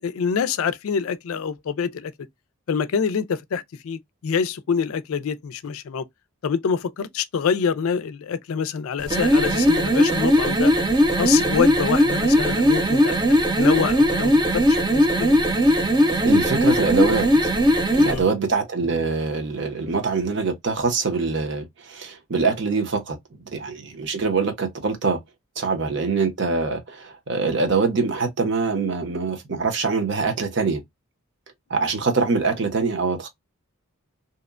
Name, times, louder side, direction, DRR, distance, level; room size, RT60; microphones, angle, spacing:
voice 1, 0.0-2.1 2.7-6.1 6.4-10.7 11.1-15.4 18.0-18.3 31.8-31.9, left 6 dB, 75° left, 0.4 m, -26 dB
sound 1, 9.0-18.2, equal, 20° right, 0.5 m, -19 dB
voice 2, 16.2-17.5 17.9-23.2 23.5-25.2 25.6-30.8 31.7-33.3, right 4 dB, 55° right, 0.7 m, -24 dB
2.8 x 2.1 x 2.3 m
head